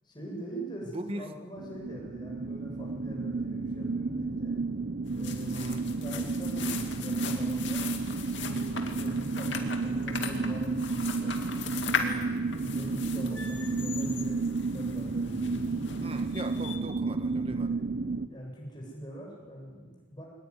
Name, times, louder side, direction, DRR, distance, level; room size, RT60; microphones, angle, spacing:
voice 1, 0.0-4.6 5.1-7.9 8.4-11.3 11.8-16.1 17.5-20.3, right 1 dB, 20° left, -1 dB, 7.5 m, -43 dB
voice 2, 0.9-1.3 5.5-5.9 16.0-17.8, right 1 dB, 30° right, 8 dB, 1.5 m, -39 dB
sound 1, 1.6-18.3, right 3 dB, 55° right, 0.7 m, -32 dB
sound 2, 5.0-16.8, left 5 dB, 65° left, 2.6 m, -38 dB
23.0 x 19.5 x 9.9 m, 1.4 s
head